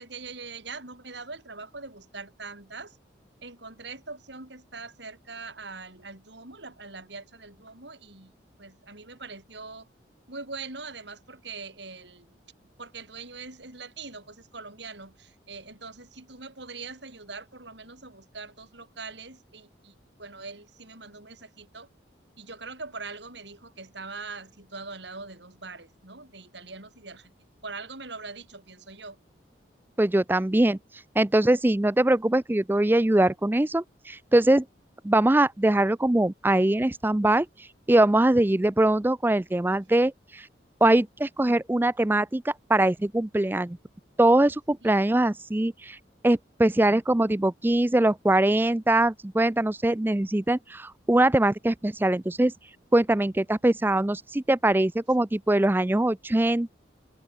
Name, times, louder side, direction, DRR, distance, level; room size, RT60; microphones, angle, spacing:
voice 1, 0.0-3.0 3.4-8.3 8.6-9.9 10.3-12.4 12.8-21.9 22.4-27.3 27.6-29.2 44.8-45.0, right 4 dB, 70° right, 6.5 m, -42 dB
voice 2, 30.0-30.8 31.2-34.7 35.0-37.5 37.9-40.5 40.8-43.8 44.2-46.0 46.2-52.5 52.9-56.7, right 1 dB, 10° right, 0.4 m, -22 dB
head